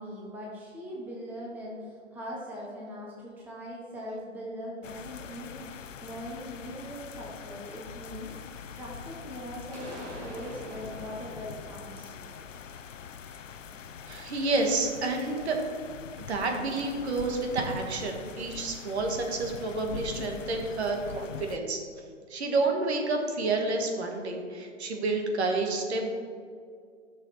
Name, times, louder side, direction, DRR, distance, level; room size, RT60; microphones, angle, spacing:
voice 1, 0.0-12.1, equal, 5° right, -4 dB, 0.8 m, -41 dB
sound 1, 4.8-21.6, left 7 dB, 90° left, 0.7 m, -43 dB
sound 2, 9.7-13.5, right 1 dB, 35° right, 2.1 m, -46 dB
voice 2, 14.1-15.6 16.3-21.8 22.3-26.1, right 3 dB, 60° right, 3 dB, 1.7 m, -29 dB
11.5 x 6.6 x 4.2 m, 2.2 s
hypercardioid pair, 150°, 37 cm